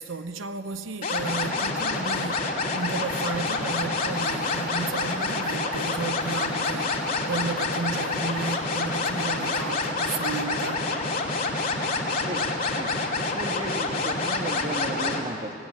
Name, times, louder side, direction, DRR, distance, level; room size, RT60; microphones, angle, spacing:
voice 1, 0.0-10.9, right 4 dB, 90° right, 0.9 m, -33 dB
sound 1, 1.0-15.2, left 3 dB, 45° left, 2.9 m, -27 dB
voice 2, 13.3-15.5, right 1 dB, 35° right, 1.8 m, -34 dB
25.0 x 17.5 x 9.5 m
head